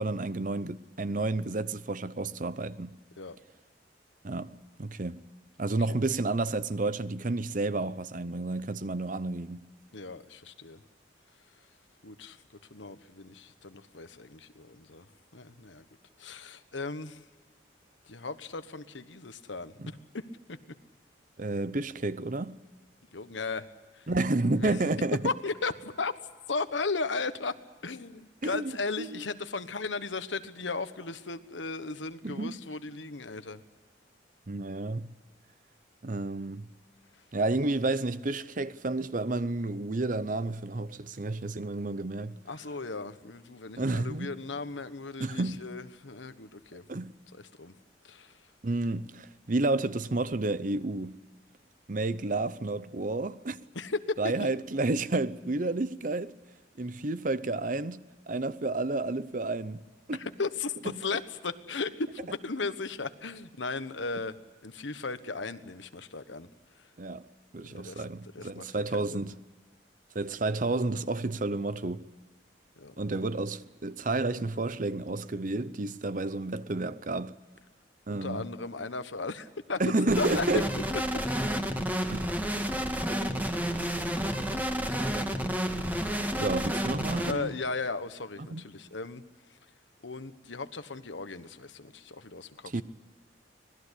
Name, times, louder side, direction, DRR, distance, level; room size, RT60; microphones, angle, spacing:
voice 1, 0.0-2.9 4.2-5.2 5.6-9.6 19.8-19.9 21.4-22.6 24.1-25.2 28.4-28.7 29.0-29.2 32.2-32.6 34.5-35.1 36.0-36.7 37.3-42.4 43.8-44.3 45.2-45.6 46.9-47.1 48.6-51.2 51.9-53.6 54.2-56.3 56.8-60.2 67.0-67.2 67.5-69.3 70.1-72.1 73.0-77.4 78.1-78.4 79.8-80.7 82.1-82.3 86.4-87.5 88.5-88.6 92.7-92.8, right 2 dB, 45° right, 0.7 m, -31 dB
voice 2, 9.9-10.8 12.0-12.4 12.7-15.1 15.3-15.8 16.2-17.2 18.0-20.6 23.1-23.7 23.9-24.1 24.5-24.7 25.2-26.1 26.5-27.6 27.8-33.6 42.5-46.8 47.3-47.7 48.0-48.5 53.7-54.3 60.1-64.4 64.6-66.9 67.6-68.0 68.3-69.3 72.8-73.0 78.1-79.8 80.2-80.8 87.3-89.2 89.5-89.6 90.0-92.8, left 3 dB, 80° left, 1.3 m, -36 dB
sound 1, 80.1-87.3, equal, 10° right, 1.8 m, -30 dB
25.5 x 19.0 x 8.3 m
head